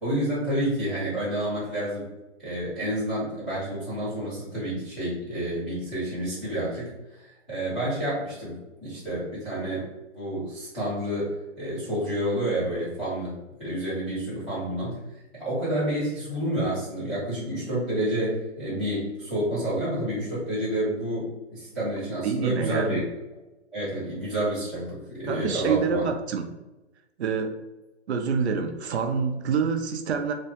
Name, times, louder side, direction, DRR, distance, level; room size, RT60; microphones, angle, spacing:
voice 1, 0.0-2.1 2.4-9.9 10.1-15.0 15.3-23.0 23.7-26.0, right 1 dB, ahead, -20 dB, 0.4 m, -29 dB
voice 2, 22.2-23.0 25.3-26.4 27.2-27.6 28.1-30.3, right 6 dB, 70° right, 5 dB, 0.5 m, -27 dB
2.9 x 2.1 x 2.8 m, 1.0 s
hypercardioid pair, 155°, 35 cm